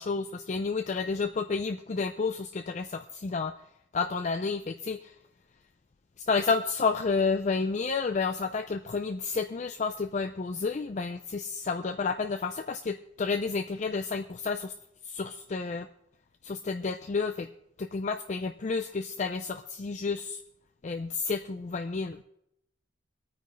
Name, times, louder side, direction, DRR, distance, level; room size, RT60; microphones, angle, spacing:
voice 1, 0.0-3.5 3.9-5.1 6.3-14.7 15.1-15.9 16.4-17.5 17.8-20.4 20.8-22.2, left 4 dB, 40° left, 7 dB, 0.4 m, -30 dB
24.0 x 9.3 x 3.2 m, 0.81 s
head